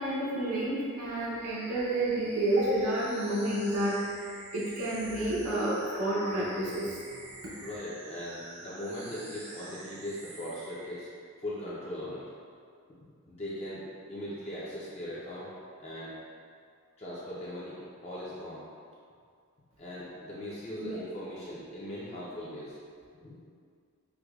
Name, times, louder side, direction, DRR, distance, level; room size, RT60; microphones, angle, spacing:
voice 1, 0.0-4.0 4.5-7.2 20.8-20.9, right 1 dB, 75° right, -6 dB, 0.7 m, -30 dB
sound 1, 1.4-11.0, right 2 dB, 30° right, 0.3 m, -47 dB
voice 2, 7.6-11.1 11.4-12.2 13.3-15.5 15.8-16.1 17.0-18.6 19.8-22.8 23.2-23.4, left 1 dB, 30° left, -8 dB, 0.5 m, -39 dB
4.6 x 2.2 x 2.3 m, 2.2 s
head